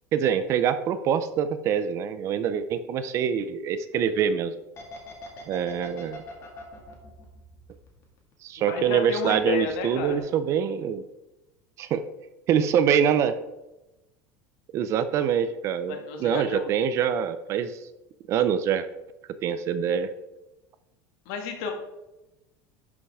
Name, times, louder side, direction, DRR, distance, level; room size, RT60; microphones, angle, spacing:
voice 1, 0.1-4.5 5.5-6.2 8.4-11.0 11.8-12.0 12.5-13.3 14.7-17.8 18.3-18.9 19.4-20.1, right 8 dB, 30° right, 12 dB, 0.5 m, -25 dB
sound 1, 4.8-8.5 8.8-9.7 10.0-10.2, left 2 dB, 30° left, 2.0 m, -43 dB
voice 2, 8.6-10.2 15.9-16.7 21.3-21.7, left 5 dB, 60° left, 3 dB, 2.1 m, -31 dB
11.5 x 5.6 x 4.8 m, 0.98 s
cardioid pair, 175°, 9 cm